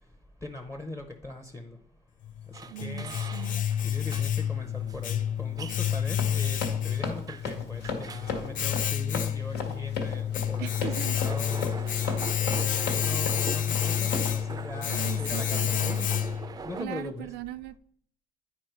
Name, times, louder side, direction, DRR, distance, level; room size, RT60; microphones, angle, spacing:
voice 1, 0.4-1.8 2.8-3.2 3.8-11.8 12.2-16.0 16.6-17.3, left 1 dB, 15° left, 5 dB, 0.7 m, -40 dB
Domestic sounds home sounds, 2.2-16.6, left 10 dB, 50° left, 0.4 m, -29 dB
sound 1, 2.5-16.9, right 5 dB, 20° right, 0.4 m, -42 dB
voice 2, 2.7-3.7 10.6-11.2 11.9-12.0 14.9-16.2 16.8-17.8, right 14 dB, 90° right, 14 dB, 0.4 m, -39 dB
Run, 5.8-14.4, left 4 dB, 85° left, 1.6 m, -35 dB
9.4 x 4.6 x 4.5 m, 0.63 s
cardioid pair, 110°, 17 cm